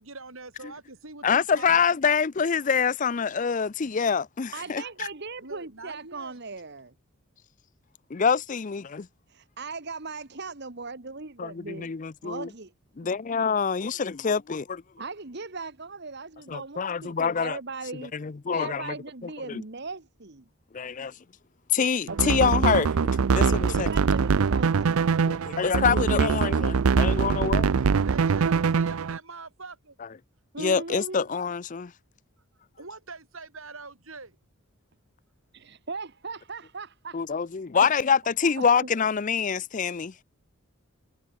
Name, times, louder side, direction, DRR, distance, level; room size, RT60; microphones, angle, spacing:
voice 1, 0.0-1.9 4.6-5.1 5.4-6.4 28.0-30.0 32.8-34.4, right 3 dB, 70° right, 4.6 m, -43 dB
voice 2, 1.2-5.1 8.1-9.1 11.4-12.5 13.0-14.8 16.5-17.6 18.0-19.0 19.5-19.6 20.7-21.2 21.7-22.9 23.3-23.9 25.3-27.7 30.6-31.9 37.1-40.1, left 6 dB, 35° left, 0.5 m, -26 dB
voice 3, 4.5-6.9 9.3-11.9 12.2-12.7 15.0-18.1 18.5-20.5 22.1-22.3 23.4-25.2 30.5-31.2 35.5-37.2 38.5-38.6, right 3 dB, 50° right, 1.5 m, -38 dB
sound 1, 22.1-29.2, right 5 dB, 90° right, 0.5 m, -23 dB
head